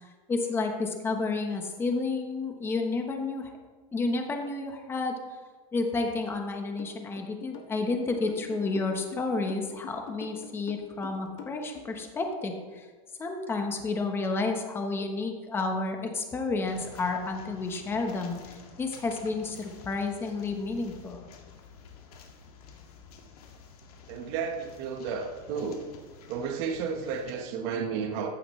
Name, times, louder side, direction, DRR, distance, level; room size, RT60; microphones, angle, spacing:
voice 1, 0.3-3.5 3.9-5.2 5.7-12.9 13.2-21.2, left 3 dB, 10° left, 4 dB, 1.1 m, -31 dB
sound 1, 6.8-12.0, left 6 dB, 45° left, 1.7 m, -44 dB
sound 2, 16.6-27.3, left 5 dB, 75° left, 2.1 m, -51 dB
voice 2, 24.1-25.8 26.3-28.3, right 6 dB, 45° right, 3 dB, 1.4 m, -32 dB
15.0 x 11.5 x 3.2 m, 1.4 s
supercardioid pair, 170°, 19 cm